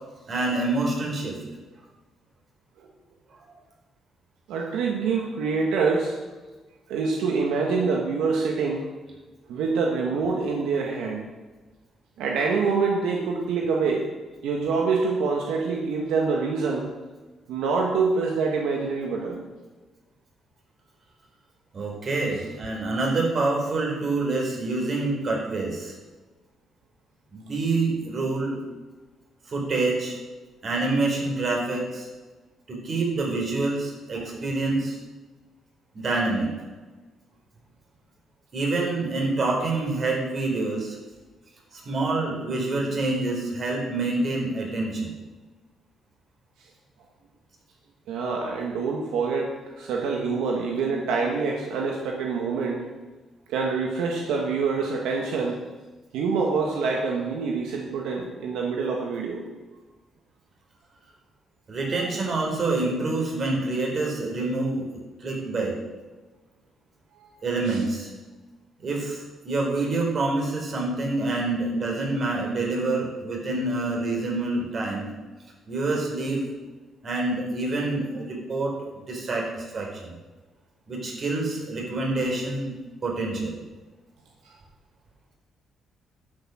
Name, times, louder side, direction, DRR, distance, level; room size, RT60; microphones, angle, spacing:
voice 1, 0.3-1.4 21.7-25.9 27.3-28.6 29.5-30.2 30.6-32.1 32.7-35.0 35.9-36.5 38.5-41.0 41.7-45.1 61.7-64.8 65.2-65.7 67.4-68.1 68.8-75.1 75.7-76.5 77.0-80.2 80.9-82.7 83.0-83.6, right 2 dB, 45° right, 0 dB, 4.5 m, -27 dB
voice 2, 4.5-6.1 6.9-8.9 9.5-11.2 12.2-14.1 14.4-16.9 17.5-19.4 48.1-52.9 53.5-55.6 56.1-59.4 67.1-67.3 67.7-67.8 84.4-84.6, right 4 dB, 90° right, 0 dB, 1.7 m, -26 dB
11.5 x 8.2 x 6.3 m, 1.2 s
cardioid pair, 90°, 0 cm